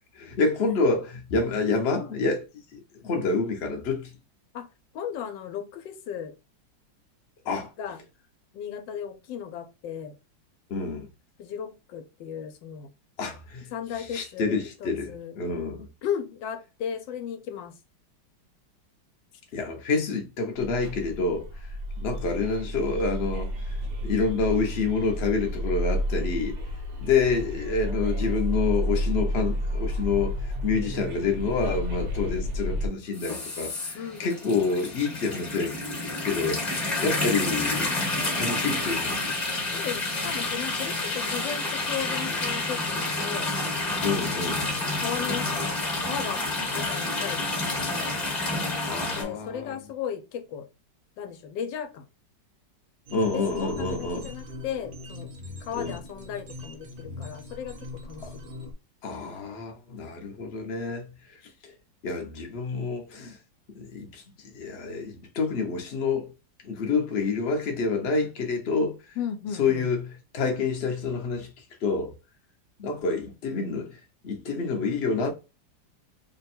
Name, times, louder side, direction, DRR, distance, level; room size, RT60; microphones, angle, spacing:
voice 1, 0.1-2.4 2.7-4.1 7.4-7.7 10.7-11.1 13.2-15.9 19.5-21.5 22.0-23.5 24.0-26.6 27.0-35.8 36.0-37.9 38.3-39.3 44.0-44.6 48.9-49.8 53.1-54.3 55.7-55.9 58.2-58.3 59.0-61.4 61.6-61.7 62.0-63.4 63.7-66.3 66.6-69.0 69.6-71.5 71.8-72.1 72.8-75.3, left 4 dB, 50° left, 0.7 m, -28 dB
voice 2, 4.9-6.4 7.8-8.0 8.5-10.1 11.4-12.9 13.7-15.3 16.0-17.8 33.9-34.2 39.7-43.5 45.0-45.7 46.0-46.4 46.7-48.2 49.2-50.7 51.2-52.0 53.3-55.3 55.6-58.5 69.2-69.9, left 8 dB, 80° left, 1.3 m, -35 dB
sound 1, 20.6-32.9, equal, 55° right, 0.8 m, -31 dB
sound 2, 33.1-49.2, left 2 dB, 25° left, 1.1 m, -29 dB
sound 3, 53.1-58.7, left 2 dB, 75° right, 0.5 m, -41 dB
3.4 x 2.2 x 4.2 m
omnidirectional pair, 2.0 m